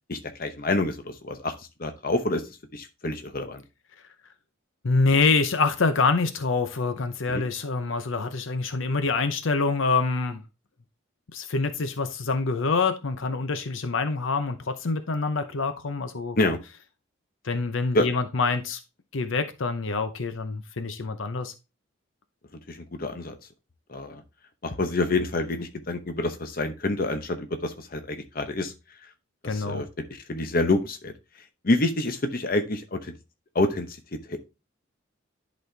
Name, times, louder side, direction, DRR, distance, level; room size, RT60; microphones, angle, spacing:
voice 1, 0.1-1.5 1.8-2.4 2.7-3.6 7.3-7.4 16.4-16.6 17.9-18.1 22.7-23.4 23.9-24.2 24.6-28.7 29.4-31.1 31.6-33.1 33.5-33.9 34.3-34.5, left 2 dB, 45° left, 0.9 m, -27 dB
voice 2, 4.8-10.4 11.3-16.4 17.4-18.8 19.1-21.5 29.4-29.8, left 4 dB, 75° left, 0.7 m, -26 dB
10.5 x 4.2 x 3.3 m
head